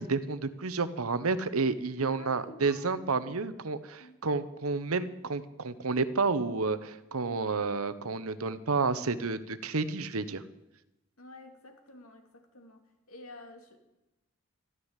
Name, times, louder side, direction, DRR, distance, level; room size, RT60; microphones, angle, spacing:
voice 1, 0.0-10.4, right 4 dB, 85° right, 14 dB, 1.0 m, -30 dB
voice 2, 2.0-3.0 4.0-4.2 11.2-12.8 13.1-13.8, left 2 dB, 80° left, 4 dB, 2.6 m, -50 dB
13.5 x 12.5 x 8.2 m, 0.95 s
head